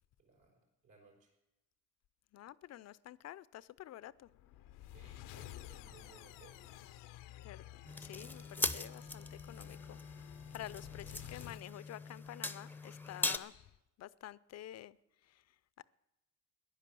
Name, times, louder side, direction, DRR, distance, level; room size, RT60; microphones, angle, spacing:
voice 1, 0.2-1.3 4.9-6.7, right 4 dB, 70° right, 5.2 m, -62 dB
voice 2, 2.3-4.3 7.4-7.6 8.0-10.0 10.5-13.7 14.0-15.0, left 13 dB, 55° left, 0.5 m, -49 dB
sound 1, 4.3-11.7, left 13 dB, 90° left, 0.8 m, -52 dB
sound 2, 7.8-13.4, left 2 dB, 5° left, 0.6 m, -41 dB
15.0 x 10.5 x 7.6 m
cardioid pair, 110°, 31 cm